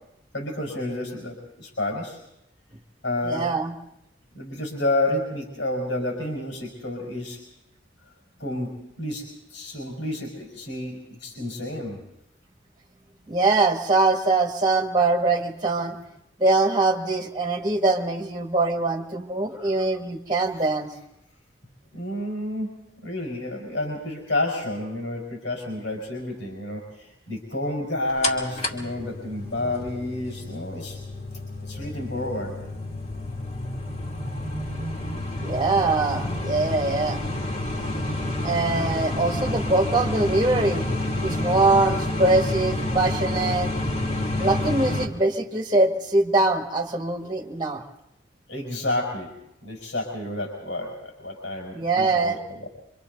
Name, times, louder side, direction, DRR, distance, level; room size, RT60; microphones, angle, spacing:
voice 1, 0.3-2.2 3.0-3.5 4.3-7.4 8.4-8.7 9.0-9.2 9.5-12.0 19.5-19.7 21.9-22.7 23.0-31.0 31.6-32.7 48.5-49.3 49.6-52.6, left 1 dB, 80° left, 0 dB, 5.5 m, -30 dB
voice 2, 3.2-3.7 13.3-16.0 16.4-20.9 35.4-37.2 38.4-40.9 41.2-43.7 44.4-47.8 51.7-52.4, right 3 dB, 25° right, 4 dB, 1.6 m, -23 dB
sound 1, 28.2-45.1, left 1 dB, 35° left, 2.6 m, -29 dB
27.0 x 25.5 x 4.0 m, 0.83 s
head